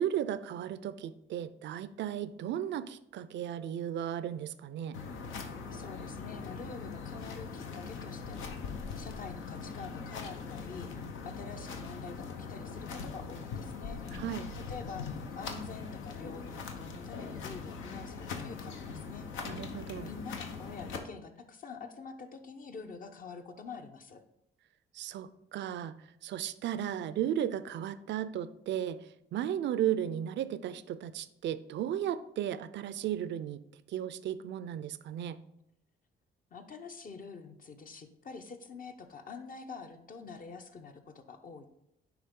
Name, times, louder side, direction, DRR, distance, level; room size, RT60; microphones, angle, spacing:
voice 1, 0.0-5.0 14.1-14.5 19.5-20.1 24.9-26.0 26.2-29.0 29.3-33.6 33.9-35.4, right 10 dB, 65° right, 15 dB, 0.4 m, -35 dB
sound 1, 4.9-21.0, left 5 dB, 85° left, 0.9 m, -41 dB
voice 2, 5.7-14.0 14.5-19.3 19.9-24.2 36.5-41.7, left 4 dB, 45° left, 6 dB, 0.8 m, -46 dB
9.6 x 3.5 x 3.7 m, 0.79 s
cardioid pair, 90°, 20 cm